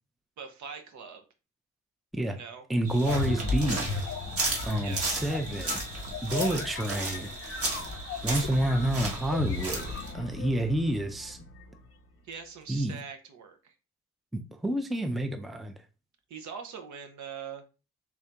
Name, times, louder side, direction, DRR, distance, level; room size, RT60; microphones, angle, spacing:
voice 1, 0.4-1.2 2.3-2.6 4.8-5.1 6.4-6.6 7.6-7.8 12.2-13.7 16.3-17.6, right 6 dB, 70° right, 0.8 m, -42 dB
voice 2, 2.7-4.0 4.6-5.8 6.2-7.3 8.2-11.4 12.7-13.0 14.3-15.7, right 1 dB, ahead, 0.4 m, -29 dB
sound 1, 2.8-10.1, right 2 dB, 50° right, 1.2 m, -35 dB
sound 2, 3.1-11.9, left 4 dB, 50° left, 0.7 m, -36 dB
3.6 x 2.7 x 3.3 m
cardioid pair, 90°, 30 cm